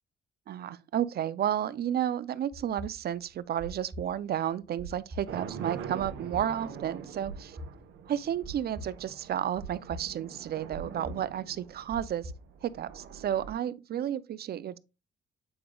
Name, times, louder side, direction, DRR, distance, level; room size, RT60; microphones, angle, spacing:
voice 1, 0.5-7.6 8.1-12.3 12.6-14.8, right 10 dB, 50° right, 0.4 m, -32 dB
sound 1, 2.5-12.8, right 2 dB, 30° right, 2.2 m, -43 dB
sound 2, 5.3-13.5, right 7 dB, 75° right, 1.0 m, -44 dB
8.6 x 4.9 x 2.3 m
cardioid pair, 90°, 20 cm